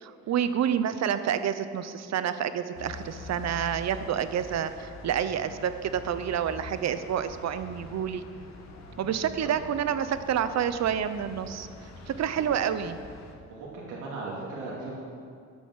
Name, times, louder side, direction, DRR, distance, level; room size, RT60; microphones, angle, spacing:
voice 1, 0.0-8.2 9.0-11.7 12.1-13.0, right 9 dB, 60° right, 12 dB, 0.8 m, -28 dB
sound 1, 2.7-13.3, left 2 dB, 60° left, 1.8 m, -45 dB
voice 2, 12.0-12.4 13.4-15.0, right 3 dB, 90° right, -5 dB, 2.6 m, -39 dB
10.0 x 8.8 x 7.3 m, 2.4 s
cardioid pair, 90°, 30 cm